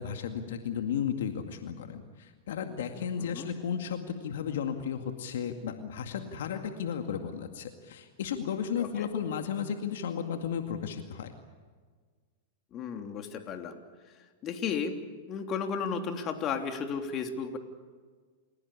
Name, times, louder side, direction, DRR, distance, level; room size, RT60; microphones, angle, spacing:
voice 1, 0.0-11.3, left 8 dB, 75° left, 6 dB, 2.1 m, -34 dB
voice 2, 12.7-13.8 14.4-15.0 15.3-17.6, left 6 dB, 35° left, 5 dB, 3.2 m, -34 dB
29.0 x 17.0 x 8.5 m, 1.5 s
hypercardioid pair, 110°, 0 cm